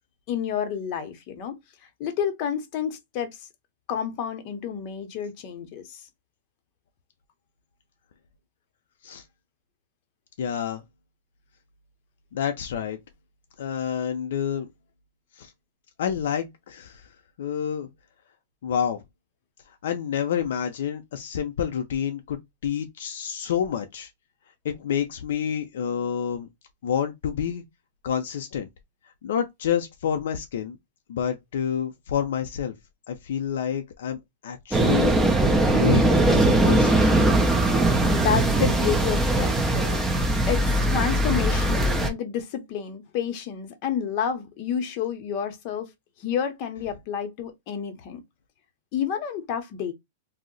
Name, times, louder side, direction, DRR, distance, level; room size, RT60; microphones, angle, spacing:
voice 1, 0.3-1.6 2.0-3.3 3.9-6.0 38.1-40.0 40.5-45.9 46.2-48.2 48.9-49.9, left 8 dB, 40° left, 0.7 m, -29 dB
voice 2, 10.4-10.8 12.3-13.0 13.6-14.7 15.4-15.5 16.0-17.1 17.4-17.9 18.6-19.0 19.8-24.1 24.6-26.5 26.8-27.6 28.0-28.7 29.2-30.8 31.1-32.7 33.1-34.2 34.4-35.1 35.7-37.0, left 8 dB, 75° left, 0.4 m, -28 dB
sound 1, 34.7-42.1, right 1 dB, 5° right, 0.6 m, -20 dB
2.6 x 2.0 x 3.8 m
supercardioid pair, 150°, 0 cm